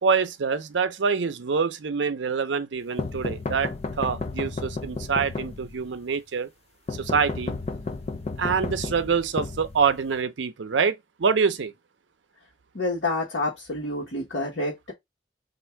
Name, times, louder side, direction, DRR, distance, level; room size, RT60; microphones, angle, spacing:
voice 1, 0.0-6.5 6.9-7.5 8.4-11.7, right 5 dB, 80° right, 0.6 m, -25 dB
sound 1, 3.0-5.9 6.9-10.2, left 3 dB, 35° left, 0.4 m, -33 dB
voice 2, 12.7-14.9, left 2 dB, 75° left, 1.3 m, -28 dB
3.6 x 2.6 x 4.4 m
head